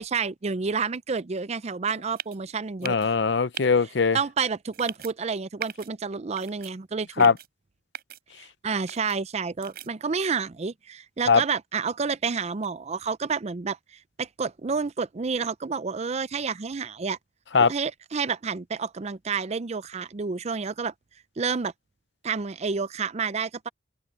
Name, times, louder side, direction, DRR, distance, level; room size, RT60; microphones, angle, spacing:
voice 1, 0.0-3.1 4.1-7.3 8.4-13.8 14.2-17.2 17.6-20.9 21.4-21.7 22.2-23.7, right 5 dB, 35° right, 0.5 m, -29 dB
sound 1, 2.2-2.4 2.8-3.1 3.5-3.7 4.7-5.1 5.6-5.9 6.4-6.7 7.2-7.5 7.9-8.2 8.9-9.2 9.6-9.9, right 10 dB, 55° right, 6.5 m, -38 dB
voice 2, 2.8-4.2 7.2-7.3 11.3-11.4 17.5-17.7, left 5 dB, 70° left, 0.7 m, -20 dB
open air
head